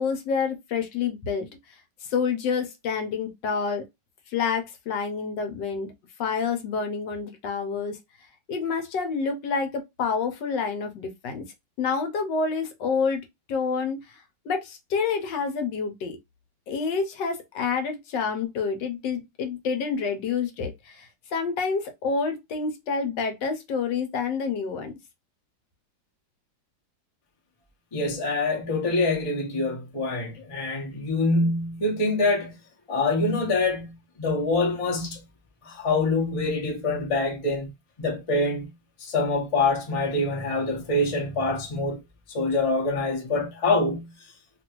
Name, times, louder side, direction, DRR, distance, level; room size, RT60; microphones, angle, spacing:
voice 1, 0.0-1.5 2.0-3.8 4.3-5.9 6.2-8.0 8.5-11.4 11.8-13.2 13.5-14.2 14.4-16.2 16.7-24.9, left 5 dB, 80° left, 1.3 m, -28 dB
voice 2, 27.9-32.6 32.9-35.2 35.6-37.7 38.0-38.7 39.0-42.0 42.3-44.1, left 2 dB, 30° left, 0.7 m, -25 dB
2.9 x 2.5 x 2.9 m
omnidirectional pair, 2.0 m